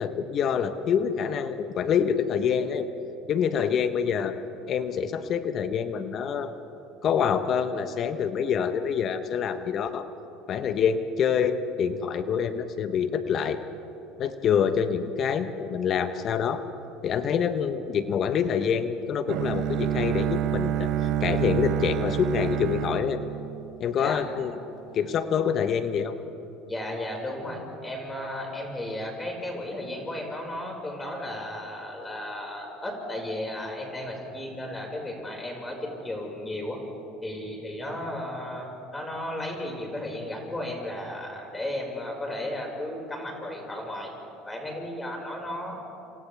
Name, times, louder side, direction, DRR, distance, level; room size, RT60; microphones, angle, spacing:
voice 1, 0.0-2.9 3.3-4.3 4.7-6.5 7.0-10.1 10.5-13.6 14.2-16.6 17.0-20.9 21.2-23.2 23.8-24.6 24.9-26.2, left 7 dB, 50° left, 10 dB, 1.1 m, -26 dB
Bowed string instrument, 19.3-24.2, right 11 dB, 60° right, 0.7 m, -28 dB
voice 2, 26.7-36.8 37.2-44.1 44.4-45.8, left 1 dB, 15° left, 0 dB, 5.6 m, -34 dB
28.5 x 26.0 x 3.5 m, 2.9 s
supercardioid pair, 90°, 0 cm